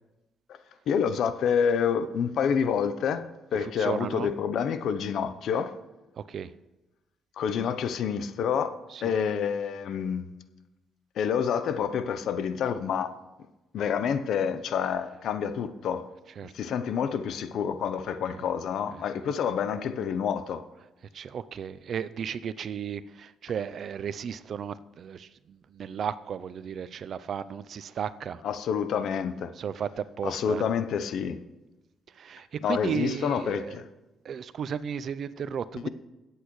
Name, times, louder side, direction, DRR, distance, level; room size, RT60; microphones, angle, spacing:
voice 1, 0.9-5.7 7.4-8.7 9.0-10.3 11.2-13.1 13.7-16.1 16.5-20.6 28.4-29.5 30.2-31.4 32.6-33.9 35.7-35.9, left 7 dB, 70° left, 0.7 m, -28 dB
voice 2, 3.6-4.3 6.2-6.5 8.9-9.1 16.4-16.5 18.9-19.0 21.1-28.4 29.6-30.6 32.2-33.8 34.2-35.9, right 7 dB, 60° right, 0.5 m, -34 dB
18.0 x 8.4 x 3.1 m
cardioid pair, 90°, 0 cm